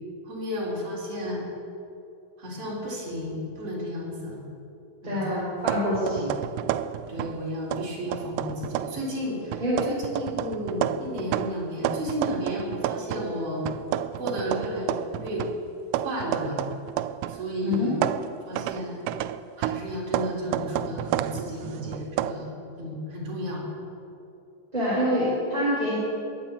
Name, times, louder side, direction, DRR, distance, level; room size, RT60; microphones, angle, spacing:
voice 1, 0.2-1.4 2.4-4.4 5.0-5.5 7.1-13.7 14.2-15.5 16.0-16.6 17.3-18.0 18.5-19.0 19.6-22.5 22.8-23.6, equal, 45° right, -4 dB, 4.7 m, -33 dB
voice 2, 5.0-6.3 9.6-9.8 17.6-17.9 24.7-26.0, left 1 dB, 10° right, -9 dB, 4.0 m, -26 dB
sound 1, 5.6-7.4 7.7-9.1 9.5-13.3 13.7-17.4 17.7-22.3, right 12 dB, 85° right, 2.1 m, -30 dB
21.5 x 7.3 x 8.5 m, 2.7 s
omnidirectional pair, 3.9 m